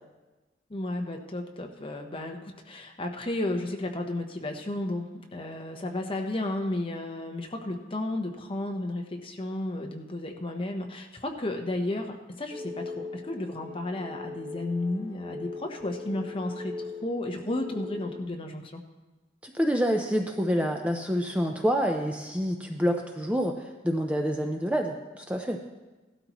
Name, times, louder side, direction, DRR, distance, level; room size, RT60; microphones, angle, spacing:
voice 1, 0.7-18.8, left 1 dB, 30° left, 3 dB, 1.0 m, -33 dB
sound 1, 12.5-18.2, left 3 dB, 45° right, 2.6 m, -40 dB
voice 2, 19.4-25.6, equal, 5° right, 3 dB, 0.6 m, -27 dB
17.0 x 12.5 x 3.0 m, 1.2 s
head